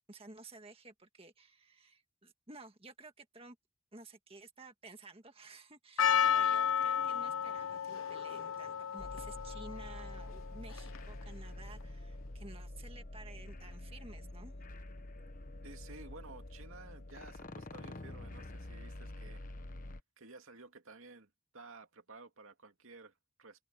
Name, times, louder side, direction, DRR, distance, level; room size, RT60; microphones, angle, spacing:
voice 1, 0.0-3.6 3.9-14.6, right 3 dB, 25° right, 1.7 m, -53 dB
Percussion, 6.0-11.2, left 8 dB, 75° left, 1.0 m, -33 dB
sound 1, 9.0-20.0, left 1 dB, 40° left, 1.0 m, -47 dB
voice 2, 15.6-19.4 20.2-23.6, right 3 dB, 75° right, 2.5 m, -54 dB
head